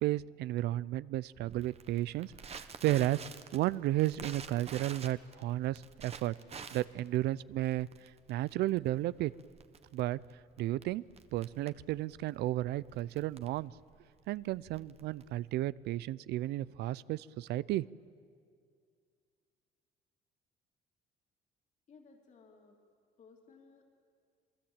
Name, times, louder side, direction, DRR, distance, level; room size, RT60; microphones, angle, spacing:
voice 1, 0.0-3.2 3.5-6.3 6.7-7.9 8.3-9.3 9.9-10.2 10.6-11.0 11.3-13.7 14.3-17.8, right 15 dB, 80° right, 20 dB, 0.6 m, -33 dB
Crackle, 1.4-15.6, right 6 dB, 40° right, 1.4 m, -50 dB
voice 2, 21.9-22.8 23.2-23.8, left 4 dB, 45° left, 1 dB, 3.0 m, -59 dB
27.5 x 20.5 x 8.9 m, 2.2 s
cardioid pair, 110°, 17 cm